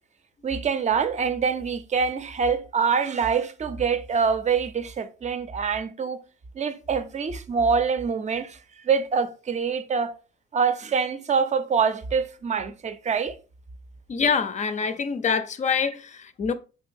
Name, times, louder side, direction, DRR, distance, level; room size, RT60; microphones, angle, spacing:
voice 1, 0.4-6.2 6.5-8.6 8.8-10.1 10.5-13.4, right 6 dB, 35° right, 0.5 m, -25 dB
voice 2, 14.1-16.5, left 6 dB, 35° left, 0.5 m, -25 dB
4.5 x 3.8 x 2.5 m
cardioid pair, 90°, 20 cm